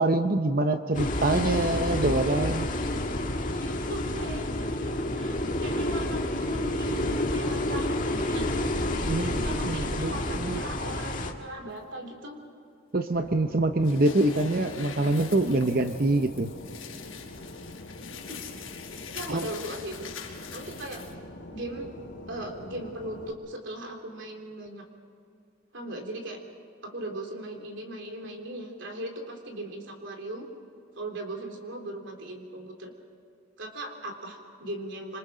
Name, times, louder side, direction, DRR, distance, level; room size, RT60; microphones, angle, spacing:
voice 1, 0.0-2.7 9.1-10.6 12.9-16.5 19.3-19.5, right 2 dB, 45° right, 7 dB, 0.8 m, -25 dB
sound 1, 0.9-11.3, left 1 dB, 40° left, 1.8 m, -29 dB
voice 2, 3.6-4.7 5.1-8.0 8.2-12.4 18.0-18.5 18.9-20.1 20.5-21.1 21.5-21.9 22.3-24.9 25.7-26.4 26.8-30.5 31.0-32.9 33.6-35.2, right 1 dB, 60° right, 3 dB, 3.6 m, -39 dB
Fixed-wing aircraft airplane, 13.1-23.3, left 1 dB, 60° left, 2.6 m, -44 dB
sound 2, 13.8-21.1, left 7 dB, 80° left, 4.7 m, -43 dB
27.0 x 26.5 x 5.1 m, 2.5 s
head